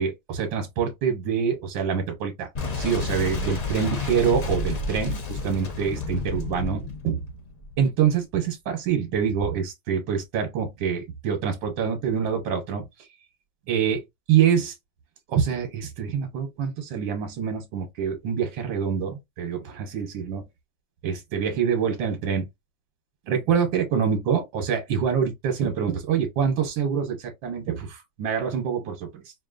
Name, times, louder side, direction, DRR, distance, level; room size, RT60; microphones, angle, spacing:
voice 1, 0.0-2.5 2.8-7.2 7.8-12.8 13.7-14.0 14.3-14.7 15.3-20.4 21.0-22.4 23.3-29.3, right 7 dB, 80° right, 1.8 m, -25 dB
Boom, 2.5-8.1, left 3 dB, 65° left, 0.4 m, -30 dB
5.3 x 2.6 x 2.5 m
omnidirectional pair, 2.0 m